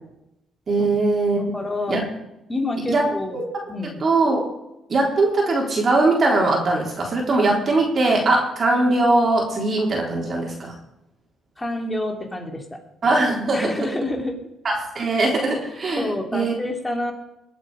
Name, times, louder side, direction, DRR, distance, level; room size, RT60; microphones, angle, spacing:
voice 1, 0.7-1.5 1.9-2.0 2.9-3.4 4.0-4.5 4.9-10.8 13.0-13.8 14.6-16.5, right 2 dB, 45° right, -1 dB, 3.8 m, -21 dB
voice 2, 1.5-2.0 2.5-3.4 3.7-4.0 11.6-12.8 13.5-14.4 16.0-17.1, left 2 dB, 15° left, 3 dB, 3.2 m, -28 dB
21.0 x 8.4 x 5.0 m, 0.88 s
cardioid pair, 90°, 0 cm